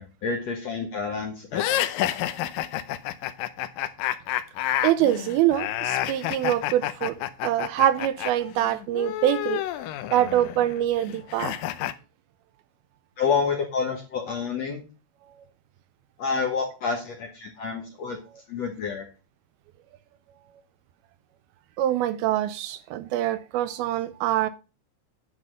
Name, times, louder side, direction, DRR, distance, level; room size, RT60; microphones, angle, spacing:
voice 1, 0.0-1.8 13.2-14.8 16.2-18.2 18.5-19.1, left 5 dB, 65° left, 1.7 m, -28 dB
sound 1, 1.5-8.3 8.6-11.9, left 13 dB, 80° left, 2.1 m, -29 dB
voice 2, 4.8-9.6 10.1-11.6 21.8-24.5, right 12 dB, 80° right, 2.3 m, -24 dB
10.0 x 5.5 x 6.2 m
omnidirectional pair, 4.6 m